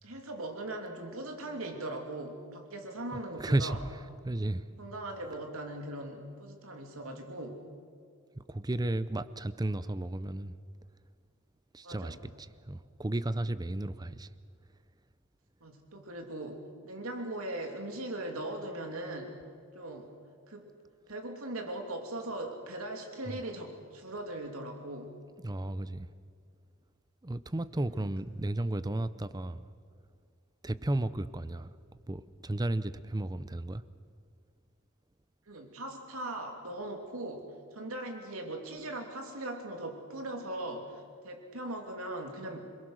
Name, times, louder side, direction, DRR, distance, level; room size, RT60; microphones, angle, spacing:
voice 1, 0.0-3.8 4.8-7.6 11.8-12.2 15.6-19.4 19.7-20.1 20.5-20.7 21.1-25.2 27.9-28.1 35.5-37.5 37.7-42.7, right 1 dB, 80° right, 4 dB, 2.9 m, -40 dB
voice 2, 3.4-3.8 4.2-4.6 8.4-10.5 11.7-14.3 23.3-23.4 25.4-26.1 27.2-29.6 30.6-31.7 32.1-33.8, right 1 dB, 20° right, 15 dB, 0.6 m, -33 dB
27.0 x 21.0 x 6.5 m, 2.2 s
head